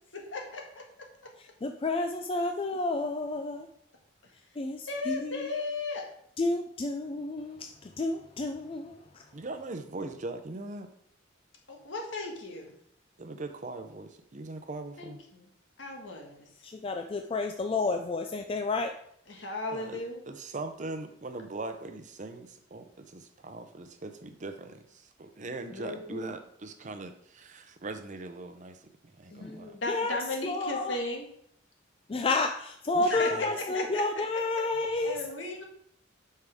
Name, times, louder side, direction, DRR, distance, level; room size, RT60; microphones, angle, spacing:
voice 1, 0.1-0.8 4.9-6.1 11.7-12.7 15.0-15.4 15.8-16.5 19.3-20.2 25.7-26.3 29.3-31.3 33.0-34.0 35.0-35.6, left 2 dB, 75° left, 1 dB, 1.6 m, -36 dB
voice 2, 1.4-3.7 4.6-5.5 6.4-9.2 16.6-18.9 29.4-29.5 29.9-30.2 30.4-31.0 32.1-35.2, left 2 dB, 30° left, 5 dB, 0.4 m, -31 dB
voice 3, 9.3-10.9 13.2-15.2 19.7-29.8 32.9-33.5, right 2 dB, 40° right, 8 dB, 0.7 m, -41 dB
8.1 x 5.6 x 3.6 m, 0.68 s
head